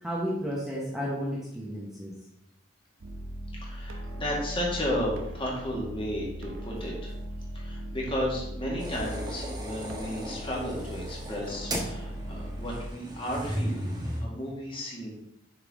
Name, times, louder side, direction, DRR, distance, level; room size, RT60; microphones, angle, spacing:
voice 1, 0.0-2.2, equal, ahead, -5 dB, 0.9 m, -32 dB
sound 1, 3.0-12.9, right 1 dB, 80° right, 0.8 m, -39 dB
voice 2, 3.6-7.1 7.5-15.1, equal, 25° left, -3 dB, 1.9 m, -33 dB
sound 2, 8.8-14.2, right 1 dB, 20° right, 1.1 m, -36 dB
6.6 x 5.8 x 3.6 m, 0.79 s
head